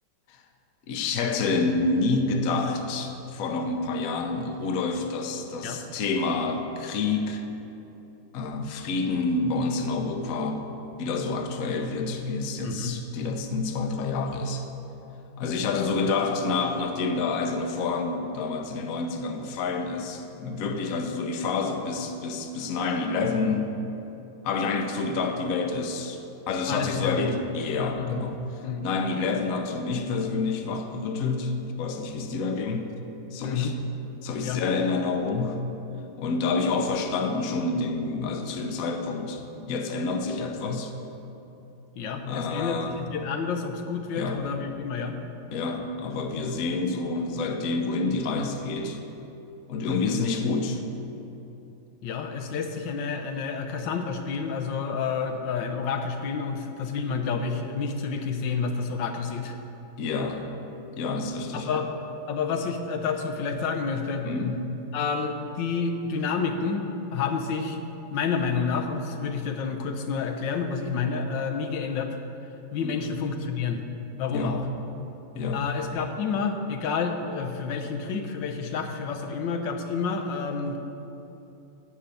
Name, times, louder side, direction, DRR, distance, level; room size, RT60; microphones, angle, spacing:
voice 1, 0.9-7.4 8.3-10.7 11.0-14.6 15.4-23.8 24.4-28.4 28.8-32.9 33.3-33.7 34.2-35.6 36.1-40.9 42.3-43.0 44.2-44.4 45.5-49.0 49.7-50.8 60.0-60.5 60.9-61.7 64.2-64.6 72.8-73.1 74.3-74.6 75.3-75.6, left 3 dB, 60° left, 4 dB, 1.1 m, -28 dB
voice 2, 12.6-13.0 26.7-27.3 27.9-28.2 28.6-28.9 33.4-33.8 34.4-34.6 42.0-45.2 49.8-50.2 52.0-59.6 61.5-64.3 64.9-66.8 67.1-67.8 68.1-72.2 72.7-73.8 74.2-74.6 75.5-80.8, left 5 dB, 85° left, 4 dB, 1.5 m, -29 dB
10.5 x 5.6 x 8.3 m, 2.9 s
omnidirectional pair, 1.9 m